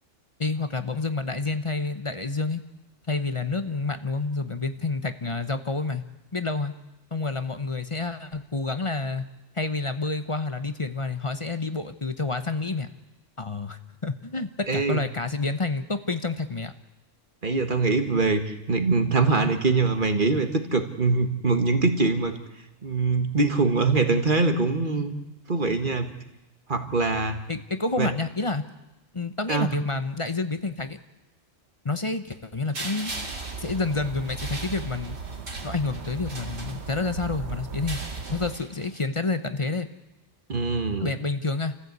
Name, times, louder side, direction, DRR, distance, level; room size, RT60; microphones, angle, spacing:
voice 1, 0.4-2.6 3.1-6.0 6.3-6.7 7.1-9.2 9.5-12.9 13.4-16.7 27.5-28.6 29.1-31.0 31.8-33.1 33.6-35.2 35.6-38.0 38.3-39.9 41.0-41.7, left 3 dB, 25° left, 9 dB, 0.9 m, -29 dB
voice 2, 14.7-15.0 17.4-22.4 22.8-25.1 25.5-26.1 26.7-27.4 28.0-28.1 29.5-29.7 40.5-41.1, right 3 dB, 40° right, 6 dB, 1.7 m, -23 dB
sound 1, 32.7-37.2 37.7-39.0, right 2 dB, 75° right, 3.5 m, -40 dB
sound 2, 33.1-38.6, right 5 dB, 60° right, 1.3 m, -37 dB
29.0 x 15.0 x 8.2 m, 1.0 s
omnidirectional pair, 1.3 m